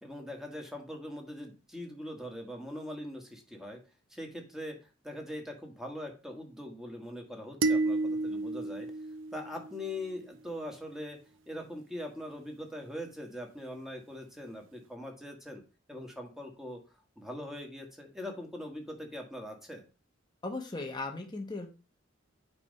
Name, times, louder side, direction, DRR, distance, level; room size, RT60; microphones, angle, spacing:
voice 1, 0.0-3.8 4.1-4.8 5.0-8.9 9.3-11.2 11.5-15.6 15.9-16.8 17.2-19.8, left 1 dB, ahead, 1 dB, 1.6 m, -42 dB
sound 1, 7.6-10.0, right 3 dB, 75° right, 0.5 m, -31 dB
voice 2, 20.4-21.7, left 2 dB, 20° left, 1 dB, 1.0 m, -37 dB
8.6 x 3.4 x 5.4 m, 0.32 s
head